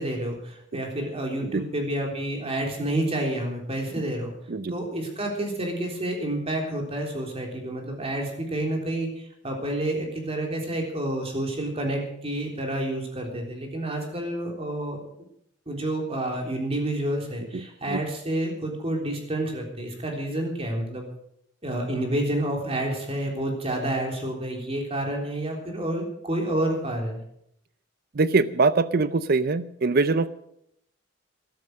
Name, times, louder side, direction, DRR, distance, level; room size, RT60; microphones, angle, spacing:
voice 1, 0.0-4.3 4.7-15.0 15.7-21.0 21.6-27.2, right 1 dB, 30° right, 1 dB, 3.6 m, -29 dB
voice 2, 17.5-18.0 28.1-30.3, right 3 dB, 50° right, 15 dB, 0.5 m, -23 dB
13.5 x 13.0 x 6.5 m, 0.74 s
head